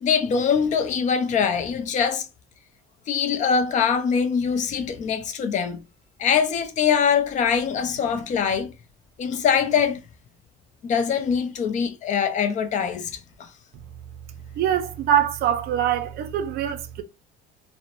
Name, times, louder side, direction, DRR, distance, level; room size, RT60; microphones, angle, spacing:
voice 1, 0.0-2.3 3.1-5.8 6.2-8.7 9.2-10.0 10.8-13.1 13.4-13.5, left 7 dB, 40° left, 0.4 m, -23 dB
voice 2, 14.6-17.0, right 10 dB, 55° right, 0.5 m, -23 dB
2.8 x 2.0 x 2.5 m
cardioid pair, 125°, 19 cm